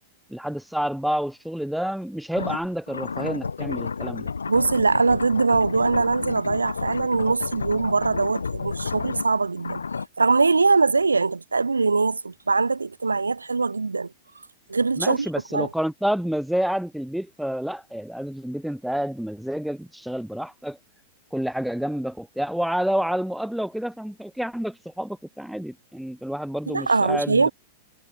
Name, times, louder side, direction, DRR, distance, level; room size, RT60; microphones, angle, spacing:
voice 1, 0.3-4.3 15.0-20.8 21.3-27.5, equal, ahead, 0.7 m, -29 dB
sound 1, 2.4-10.1, left 5 dB, 80° left, 1.2 m, -31 dB
voice 2, 4.5-9.8 10.2-14.1 14.7-15.7 26.7-27.5, right 4 dB, 85° right, 1.0 m, -22 dB
figure-of-eight pair, 100°, 0 cm